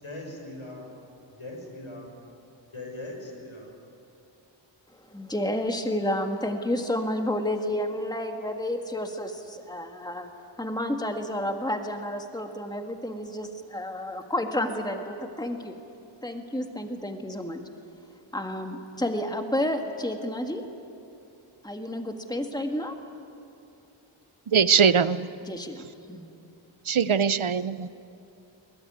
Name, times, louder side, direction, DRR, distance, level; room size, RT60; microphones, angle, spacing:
voice 1, 0.0-0.9 1.4-2.1 2.7-3.7, left 1 dB, 75° left, 0 dB, 6.4 m, -40 dB
voice 2, 5.1-10.3 10.6-15.8 16.2-17.7 18.3-20.6 21.6-23.0 25.5-26.3, left 1 dB, 10° left, 5 dB, 1.8 m, -30 dB
voice 3, 24.5-25.3 26.8-27.9, right 6 dB, 75° right, 15 dB, 0.8 m, -21 dB
22.5 x 21.0 x 9.5 m, 2.7 s
wide cardioid pair, 45°, 50 cm